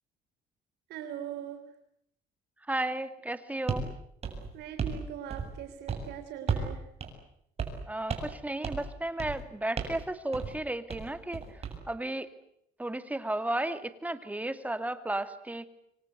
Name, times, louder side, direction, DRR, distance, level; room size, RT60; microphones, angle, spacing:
voice 1, 0.9-1.6 4.5-6.8, right 9 dB, 80° right, 8 dB, 3.5 m, -41 dB
voice 2, 2.7-3.9 7.9-11.4 11.9-12.3 12.8-15.7, right 1 dB, 10° right, 11 dB, 2.5 m, -33 dB
sound 1, 3.7-3.9 4.2-5.0 5.3-5.6 5.9-6.1 6.5-6.7 7.0-7.1 7.6-7.8 8.1-8.4 8.6-8.9 9.2-9.4 9.8-10.0 10.3-10.5 10.9-11.8, right 5 dB, 35° right, 7.7 m, -34 dB
27.5 x 24.5 x 8.1 m, 0.73 s
cardioid pair, 110°, 17 cm